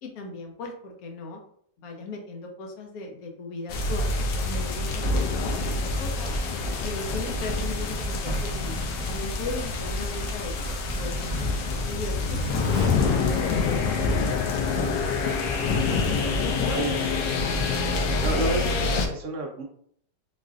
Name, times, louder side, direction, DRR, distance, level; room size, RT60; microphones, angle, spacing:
voice 1, 0.0-1.4 1.8-6.4 6.8-8.7 9.1-13.9 14.8-15.0 15.3-15.5 16.3-17.5, left 2 dB, 65° left, 1 dB, 1.0 m, -38 dB
sound 1, 3.7-19.1, left 3 dB, 85° left, 1.2 m, -26 dB
Zipper (clothing), 6.1-14.0, equal, 35° left, 0.4 m, -34 dB
voice 2, 16.6-17.0 18.2-19.6, right 2 dB, 60° right, 1 dB, 0.8 m, -30 dB
4.0 x 2.5 x 2.4 m, 0.64 s
omnidirectional pair, 1.9 m